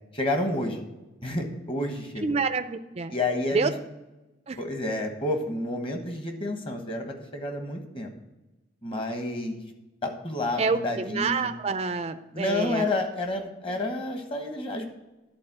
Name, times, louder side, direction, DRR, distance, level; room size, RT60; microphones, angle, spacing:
voice 1, 0.1-0.9 1.2-2.4 3.1-3.7 4.6-8.1 8.8-9.6 10.0-11.5 12.3-14.9, left 2 dB, 25° left, 4 dB, 1.2 m, -30 dB
voice 2, 2.2-3.1 3.5-3.7 4.5-4.6 10.6-12.9, right 4 dB, 30° right, 9 dB, 0.4 m, -28 dB
11.0 x 4.2 x 7.4 m, 1.0 s
head